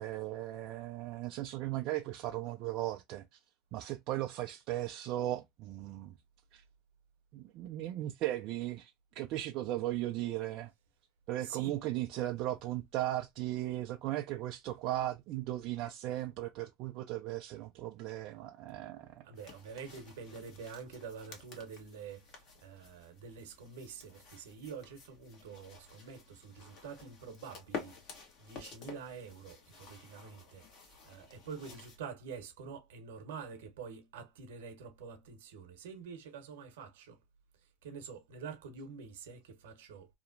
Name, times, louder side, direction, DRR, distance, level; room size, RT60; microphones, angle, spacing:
voice 1, 0.0-3.2 3.7-6.1 6.5-6.6 7.3-10.7 11.3-19.2, right 14 dB, 55° right, 0.3 m, -37 dB
voice 2, 11.4-11.7 19.2-30.6 31.0-37.2 37.8-40.1, right 6 dB, 75° right, 0.9 m, -47 dB
sound 1, 19.4-32.0, left 6 dB, 50° left, 1.1 m, -51 dB
2.8 x 2.1 x 2.5 m
hypercardioid pair, 95°, 0 cm